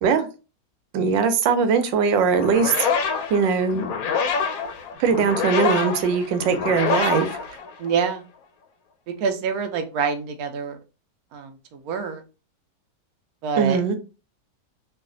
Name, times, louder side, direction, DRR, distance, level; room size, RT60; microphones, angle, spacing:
voice 1, 0.9-2.7 3.3-3.9 5.0-7.3 13.6-14.0, right 6 dB, 85° right, 9 dB, 1.3 m, -20 dB
sound 1, 2.3-8.2, left 5 dB, 65° left, 0.9 m, -26 dB
voice 2, 7.8-8.2 9.2-10.8 11.3-12.2 13.4-14.0, right 6 dB, 65° right, 5 dB, 1.0 m, -26 dB
3.1 x 2.5 x 3.8 m, 0.32 s
omnidirectional pair, 2.0 m